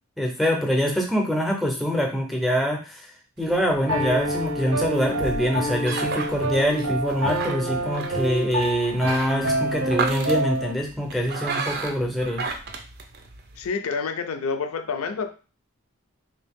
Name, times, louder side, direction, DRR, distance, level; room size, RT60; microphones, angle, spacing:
voice 1, 0.2-3.0 3.4-12.4, equal, ahead, 1 dB, 0.6 m, -24 dB
sound 1, 3.4-13.7, right 4 dB, 45° right, 0.5 m, -34 dB
Piano, 3.9-10.7, right 1 dB, 75° right, 0.8 m, -27 dB
voice 2, 13.6-15.3, left 5 dB, 75° left, 9 dB, 0.5 m, -28 dB
3.3 x 2.7 x 3.5 m, 0.36 s
head